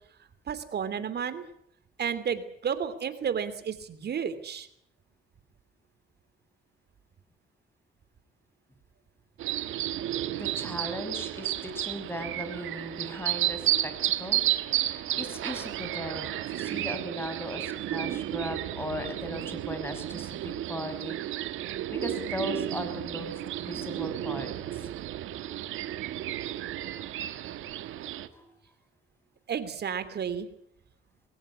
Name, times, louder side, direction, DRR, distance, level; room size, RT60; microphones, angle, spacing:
voice 1, 0.5-1.4 2.0-4.7 29.5-30.5, right 7 dB, 55° right, 12 dB, 3.0 m, -32 dB
sound 1, 9.4-28.3, right 13 dB, 85° right, 1.5 m, -32 dB
voice 2, 10.3-14.4 14.8-21.5 21.9-24.9 28.3-28.5, equal, 10° left, 8 dB, 5.8 m, -38 dB
21.5 x 17.5 x 9.8 m, 0.69 s
cardioid pair, 90°, 20 cm